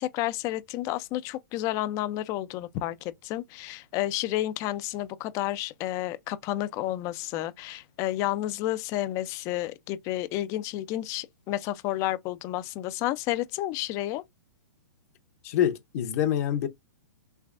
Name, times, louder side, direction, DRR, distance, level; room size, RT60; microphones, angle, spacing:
voice 1, 0.0-14.2, left 15 dB, 30° left, 0.4 m, -31 dB
voice 2, 15.4-16.7, left 10 dB, 50° left, 0.7 m, -26 dB
3.3 x 3.2 x 2.5 m
hypercardioid pair, 140°, 10 cm